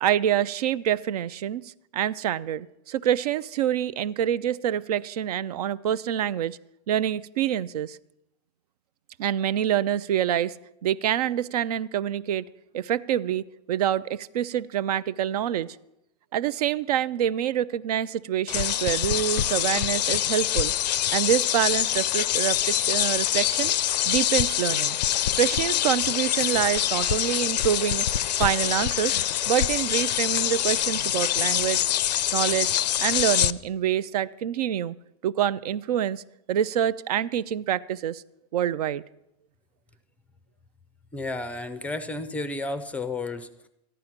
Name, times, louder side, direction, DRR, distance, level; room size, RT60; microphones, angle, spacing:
voice 1, 0.0-6.6 6.9-8.0 9.2-10.5 10.8-12.5 12.7-15.8 16.3-20.7 21.1-23.7 24.1-25.0 25.4-28.1 28.4-29.2 29.5-31.8 32.3-35.0 35.2-36.2 36.5-38.2 38.5-39.0, right 10 dB, 70° right, 18 dB, 0.5 m, -26 dB
sound 1, 18.5-33.5, left 11 dB, 85° left, 0.5 m, -25 dB
voice 2, 41.1-43.7, left 2 dB, 5° left, 12 dB, 0.4 m, -32 dB
13.5 x 11.0 x 5.8 m, 0.85 s
supercardioid pair, 150°, 21 cm